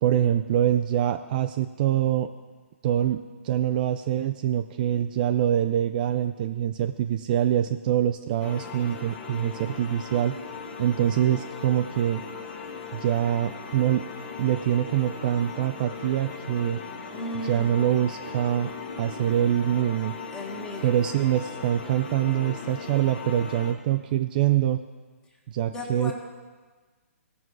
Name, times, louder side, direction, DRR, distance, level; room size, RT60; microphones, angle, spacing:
voice 1, 0.0-2.3 2.8-10.4 10.8-12.2 12.9-14.0 14.4-16.8 17.4-18.7 19.0-20.2 20.8-24.8 25.5-26.1, right 11 dB, 35° right, 8 dB, 0.4 m, -24 dB
sound 1, 8.4-23.7, left 5 dB, 40° left, 1.4 m, -39 dB
voice 2, 17.1-17.7 20.3-21.1 25.7-26.1, equal, 10° left, 1 dB, 1.5 m, -35 dB
17.0 x 6.2 x 4.7 m, 1.4 s
hypercardioid pair, 145°, 8 cm